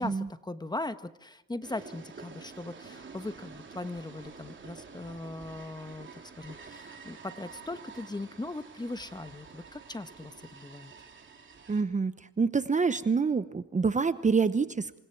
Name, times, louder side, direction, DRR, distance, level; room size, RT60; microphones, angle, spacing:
voice 1, 0.0-10.9, left 2 dB, 15° left, 11 dB, 1.1 m, -39 dB
sound 1, 1.6-11.8, right 5 dB, 40° right, 3.5 m, -49 dB
voice 2, 11.7-15.0, right 5 dB, 25° right, 13 dB, 0.9 m, -27 dB
28.5 x 24.5 x 4.7 m, 0.88 s
cardioid pair, 90°, 30 cm